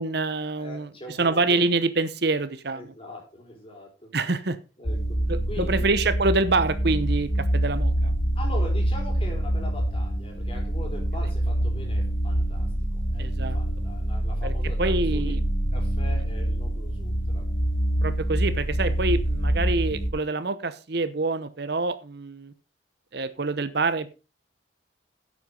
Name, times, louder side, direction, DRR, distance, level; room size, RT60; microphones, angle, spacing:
voice 1, 0.0-0.9 1.2-2.9 4.1-4.6 5.3-8.1 13.2-13.6 14.4-14.5 14.8-15.4 18.0-22.5 23.1-24.1, right 3 dB, 55° right, 14 dB, 0.9 m, -26 dB
voice 2, 0.6-1.6 2.7-4.1 4.8-5.2 5.5-5.9 8.3-15.3 15.7-17.5, left 1 dB, 30° left, 1 dB, 4.6 m, -41 dB
sound 1, 4.9-20.1, right 1 dB, 80° left, 2.9 m, -26 dB
10.5 x 7.9 x 5.4 m, 0.32 s
head